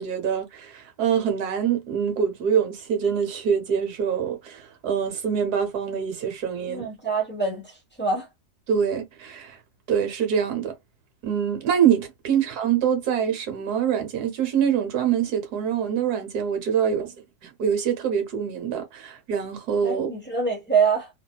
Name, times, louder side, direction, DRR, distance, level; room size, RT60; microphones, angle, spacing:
voice 1, 0.0-6.9 8.7-9.6 9.9-10.7 11.2-17.1 17.4-20.1, right 8 dB, 65° right, 1.4 m, -25 dB
voice 2, 6.7-7.7 8.0-8.3 19.8-21.1, right 5 dB, 10° left, 0.7 m, -25 dB
2.9 x 2.7 x 2.2 m
omnidirectional pair, 1.9 m